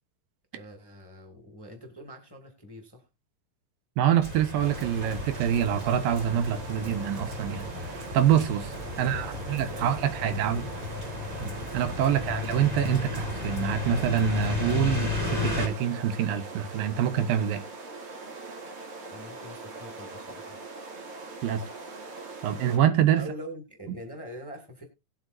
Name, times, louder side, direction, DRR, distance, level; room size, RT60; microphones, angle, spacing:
voice 1, 0.5-3.1 8.9-10.8 19.1-20.6 23.2-24.8, equal, 10° left, 1.4 m, -44 dB
voice 2, 4.0-10.6 11.4-17.6 21.4-21.6 22.4-23.2, right 10 dB, 90° right, 2.9 m, -26 dB
sound 1, 4.2-15.7, left 3 dB, 30° right, 4.7 m, -34 dB
sound 2, 4.6-22.8, right 3 dB, 60° right, 3.8 m, -42 dB
18.5 x 8.0 x 2.7 m
omnidirectional pair, 3.9 m